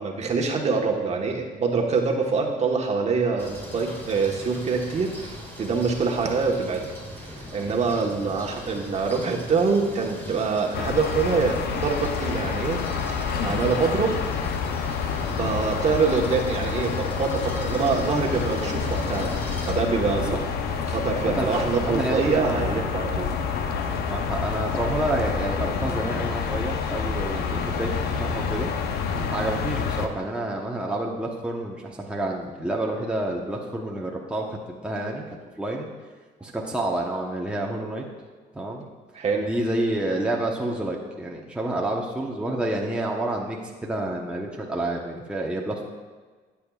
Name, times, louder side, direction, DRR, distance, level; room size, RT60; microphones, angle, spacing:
voice 1, 0.0-6.9 7.1-12.8 13.1-14.1 15.3-19.3 19.7-20.4 20.9-23.3 29.1-29.3 39.1-39.5, right 4 dB, 40° right, 1 dB, 1.3 m, -25 dB
sound 1, 3.4-19.7, equal, 10° left, 2.0 m, -40 dB
sound 2, 10.7-30.1, left 6 dB, 70° left, 0.8 m, -28 dB
voice 2, 21.2-23.0 24.1-28.7 29.3-35.2 35.6-35.9 36.4-38.0 38.5-38.8 39.4-45.8, right 1 dB, 5° right, -2 dB, 1.0 m, -29 dB
14.0 x 8.5 x 2.4 m, 1.4 s
cardioid pair, 110°, 17 cm